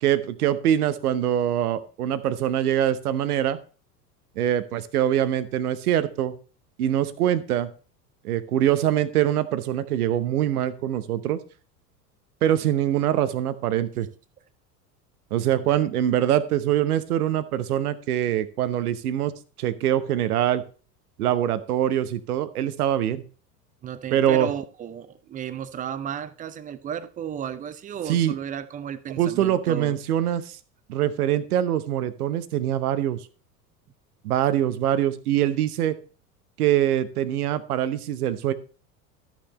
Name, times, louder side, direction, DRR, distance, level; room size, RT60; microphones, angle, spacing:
voice 1, 0.0-3.6 4.4-6.3 6.8-7.7 8.2-11.4 12.4-14.1 15.3-19.3 19.6-20.6 21.2-23.2 24.1-24.5 28.1-28.3 29.2-30.6 30.9-33.2 34.2-36.0 36.6-38.5, right 11 dB, 65° right, 1.0 m, -23 dB
voice 2, 23.8-30.0, right 9 dB, 15° right, 0.5 m, -34 dB
13.0 x 6.1 x 4.2 m
figure-of-eight pair, 80°, 49 cm